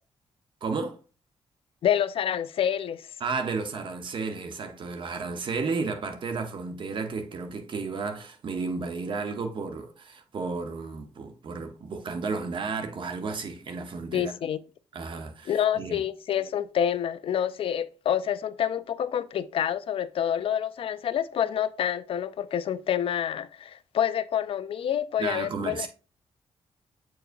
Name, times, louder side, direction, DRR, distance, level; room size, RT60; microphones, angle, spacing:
voice 1, 0.6-1.0 3.2-14.3 14.9-16.0 25.2-25.9, right 4 dB, 50° right, 1.0 m, -33 dB
voice 2, 1.8-3.0 14.1-14.6 15.5-25.9, left 9 dB, 60° left, 0.4 m, -27 dB
7.7 x 4.8 x 2.6 m
cardioid pair, 125°, 11 cm